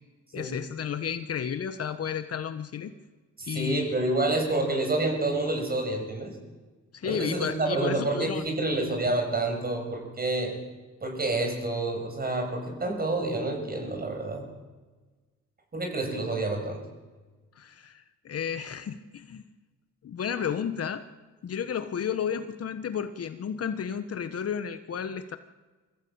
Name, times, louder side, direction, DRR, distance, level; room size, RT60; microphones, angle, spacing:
voice 1, 0.3-2.9 3.5-3.9 6.9-8.4 17.6-19.4 20.0-21.0 21.4-25.4, left 7 dB, 50° left, 10 dB, 1.3 m, -32 dB
voice 2, 3.4-6.3 7.0-10.5 11.0-14.4 15.7-16.8, right 2 dB, 30° right, 3 dB, 7.8 m, -28 dB
24.5 x 16.5 x 8.9 m, 1.3 s
cardioid pair, 90°, 30 cm